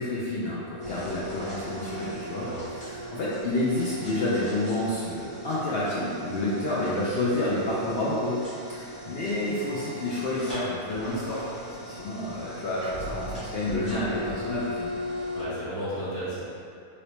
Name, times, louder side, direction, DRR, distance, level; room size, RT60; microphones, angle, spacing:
voice 1, 0.0-11.5 11.8-14.9, left 1 dB, 80° left, -8 dB, 0.5 m, -29 dB
sound 1, 0.8-15.4, equal, 5° left, 0.8 m, -38 dB
voice 2, 2.2-2.6 15.3-16.4, right 1 dB, 40° left, -14 dB, 1.5 m, -34 dB
3.2 x 2.6 x 2.9 m, 2.5 s
omnidirectional pair, 1.6 m